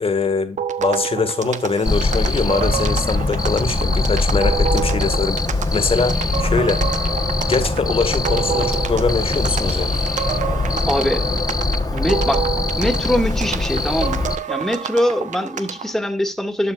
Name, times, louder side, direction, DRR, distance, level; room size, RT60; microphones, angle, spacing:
voice 1, 0.0-5.4 5.7-6.8 7.4-9.9, left 4 dB, 45° left, 2.0 m, -22 dB
sound 1, 0.6-15.9, right 8 dB, 65° right, 1.1 m, -28 dB
Cricket, 1.9-14.4, left 3 dB, 30° left, 1.3 m, -22 dB
voice 2, 10.9-11.3 11.9-12.4 12.8-16.7, equal, ahead, 2.2 m, -22 dB
11.5 x 6.2 x 2.6 m
supercardioid pair, 50°, 13 cm